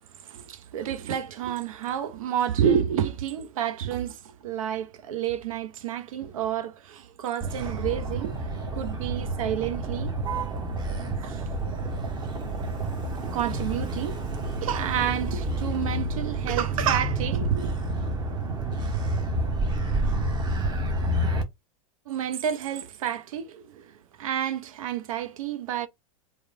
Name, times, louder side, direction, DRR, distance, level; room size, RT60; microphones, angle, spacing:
voice 1, 0.2-10.1 11.2-11.4 13.3-14.2 14.6-17.7 22.1-25.9, right 9 dB, 70° right, 0.6 m, -29 dB
Motor vehicle (road), 7.4-21.4, right 1 dB, 25° right, 0.9 m, -29 dB
2.9 x 2.1 x 2.6 m
hypercardioid pair, 100°, 18 cm